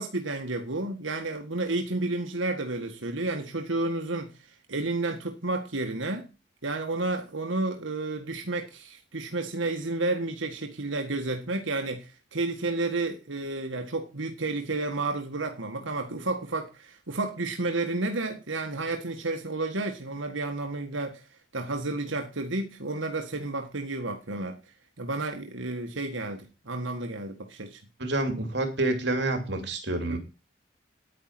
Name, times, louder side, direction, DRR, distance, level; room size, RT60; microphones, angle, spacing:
voice 1, 0.0-6.3 6.6-21.3 21.5-24.6 25.0-27.8 30.1-30.2, right 2 dB, 90° right, 1.7 m, -31 dB
voice 2, 28.0-30.2, right 2 dB, 65° right, 3.0 m, -28 dB
10.0 x 9.5 x 6.0 m
head